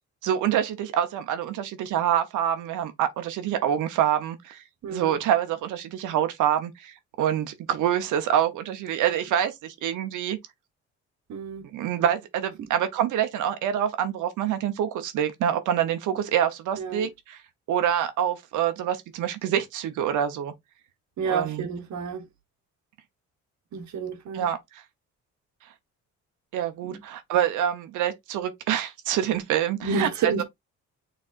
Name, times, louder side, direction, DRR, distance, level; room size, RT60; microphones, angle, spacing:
voice 1, 0.2-4.6 4.9-10.4 11.7-17.4 17.7-20.5 21.3-21.7 24.3-24.6 26.5-30.4, right 10 dB, 85° right, 0.9 m, -26 dB
voice 2, 4.8-5.1 11.3-11.7 16.8-17.1 21.2-22.3 23.7-24.5 26.8-27.0 29.8-30.4, right 5 dB, 70° right, 1.1 m, -30 dB
6.5 x 3.3 x 2.5 m
cardioid pair, 90°, 30 cm